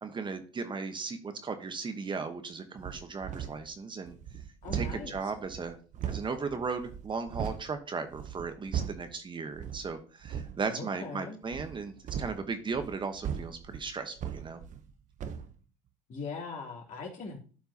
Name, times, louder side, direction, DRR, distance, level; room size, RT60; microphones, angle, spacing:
voice 1, 0.0-4.1 4.7-5.8 6.0-14.6, right 4 dB, 30° right, 8 dB, 1.1 m, -36 dB
sound 1, 2.8-3.7 4.0-7.7 8.1-9.1 9.5-9.9 10.2-10.6 11.5-14.9 15.2-15.5, right 8 dB, 50° right, 0.9 m, -38 dB
voice 2, 4.6-5.3 10.7-11.4 16.1-17.4, left 4 dB, 55° left, 0 dB, 3.0 m, -40 dB
11.5 x 4.6 x 2.8 m, 0.39 s
supercardioid pair, 80°, 16 cm